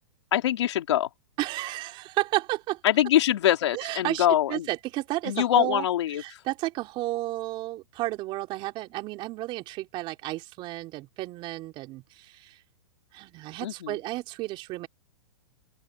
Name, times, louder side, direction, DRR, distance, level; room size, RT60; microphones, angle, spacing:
voice 1, 0.3-1.1 2.8-4.7 5.2-6.4 13.6-13.9, left 12 dB, 70° left, 3.3 m, -24 dB
voice 2, 1.4-2.8 3.7-5.9 6.2-12.6 13.1-14.9, right 18 dB, 35° right, 3.9 m, -32 dB
open air
hypercardioid pair, 140°, 15 cm